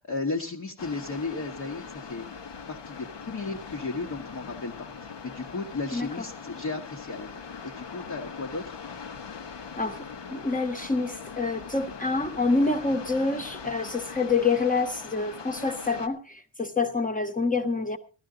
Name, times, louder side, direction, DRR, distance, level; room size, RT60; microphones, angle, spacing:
voice 1, 0.0-2.3 2.7-7.3 7.6-8.8, left 3 dB, 40° left, 1.3 m, -34 dB
sound 1, 0.8-16.1, left 5 dB, 70° left, 1.4 m, -41 dB
voice 2, 10.3-18.0, left 3 dB, 20° left, 1.3 m, -27 dB
16.0 x 12.5 x 3.8 m
wide cardioid pair, 135°, 44 cm